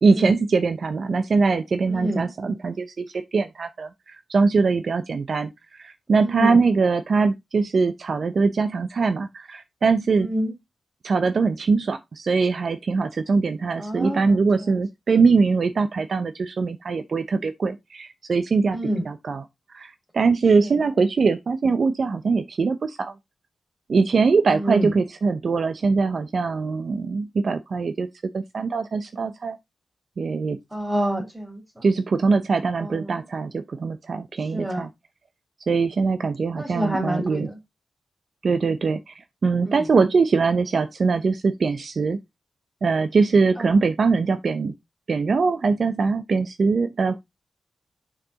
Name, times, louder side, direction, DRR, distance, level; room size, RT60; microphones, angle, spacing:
voice 1, 0.0-10.3 11.0-18.8 19.0-19.5 19.7-23.1 23.9-28.1 28.3-29.6 30.2-30.6 31.8-34.9 35.7-37.5 38.4-39.1 39.4-42.2 42.8-44.7 45.1-47.2, right 4 dB, 60° right, 0.7 m, -22 dB
voice 2, 1.9-2.2 6.2-6.6 10.2-10.5 13.8-14.3 18.7-19.0 24.6-24.9 30.7-31.6 32.8-32.9 34.5-34.8 36.5-37.5 39.7-39.8, right 1 dB, 10° right, 3.6 m, -27 dB
6.9 x 5.9 x 3.9 m
cardioid pair, 85°, 0 cm